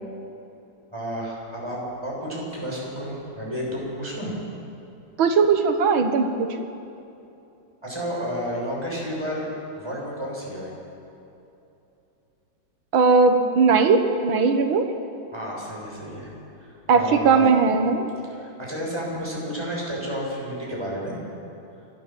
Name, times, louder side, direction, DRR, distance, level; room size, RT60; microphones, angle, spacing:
voice 1, 0.9-4.3 7.8-9.5 9.8-10.7 15.3-16.3 16.6-17.5 18.3-21.1, equal, 15° right, -4 dB, 6.7 m, -31 dB
voice 2, 5.2-6.6 12.9-14.9 16.9-18.1, right 4 dB, 80° right, 7 dB, 2.2 m, -19 dB
29.5 x 13.5 x 7.5 m, 2.8 s
omnidirectional pair, 2.2 m